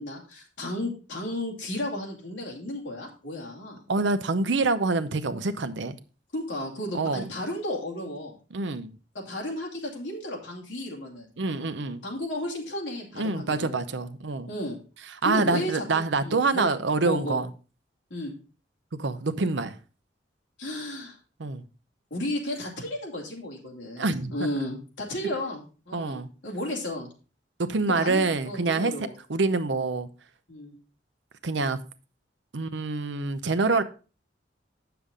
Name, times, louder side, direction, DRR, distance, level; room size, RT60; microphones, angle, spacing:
voice 1, 0.0-3.8 6.3-8.4 9.1-11.3 12.0-13.8 14.5-14.8 15.2-16.7 17.0-17.4 18.1-18.3 20.6-21.2 22.1-27.1 27.9-29.2 30.5-30.8, left 1 dB, 80° left, 2.5 m, -33 dB
voice 2, 3.9-6.0 6.9-7.3 8.5-8.9 11.4-12.0 13.2-14.5 15.2-17.5 19.0-19.8 21.4-21.6 24.0-24.5 25.9-26.3 27.6-28.9 29.3-30.1 31.4-31.8 32.5-33.8, right 3 dB, 75° right, 0.7 m, -26 dB
8.3 x 6.9 x 3.7 m
head